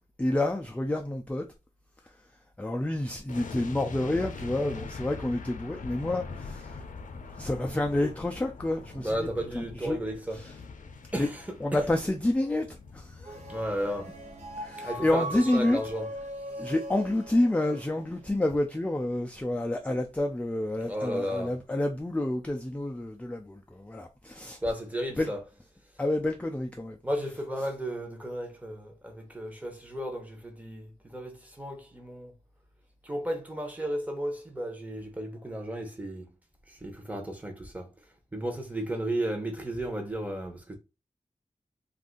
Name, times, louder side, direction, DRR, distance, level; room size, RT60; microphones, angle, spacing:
voice 1, 0.0-1.5 2.6-6.8 7.4-9.3 9.6-10.0 10.3-10.5 11.2-11.3 11.6-13.6 14.6-15.8 16.6-24.6 25.2-25.3 26.0-27.0, left 1 dB, 10° left, 0.3 m, -29 dB
sound 1, 3.3-16.4 16.7-16.9, left 4 dB, 75° left, 0.5 m, -43 dB
voice 2, 8.9-10.4 11.1-11.5 11.7-11.8 13.5-14.1 14.8-16.1 16.5-16.7 20.9-21.6 24.6-25.4 27.0-32.3 33.0-36.3 36.7-37.9 38.3-40.7, equal, 10° right, 0.8 m, -34 dB
sound 2, 13.2-18.6, right 1 dB, 55° right, 0.8 m, -40 dB
2.6 x 2.4 x 3.7 m
wide cardioid pair, 110°, 13 cm